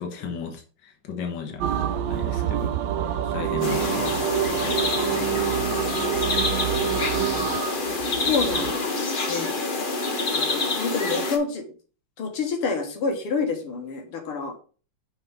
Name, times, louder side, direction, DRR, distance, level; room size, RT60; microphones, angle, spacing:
voice 1, 0.0-2.7 3.0-4.2, left 6 dB, 60° left, 3 dB, 1.8 m, -35 dB
sound 1, 1.6-8.7, right 12 dB, 85° right, 0.9 m, -27 dB
voice 2, 3.0-3.8 8.3-8.8 9.3-9.5 10.3-11.7 12.2-14.5, left 4 dB, 80° left, 3 dB, 2.2 m, -28 dB
sound 2, 3.6-11.4, left 3 dB, 45° left, 0.7 m, -26 dB
5.8 x 4.7 x 4.9 m, 0.38 s
omnidirectional pair, 2.4 m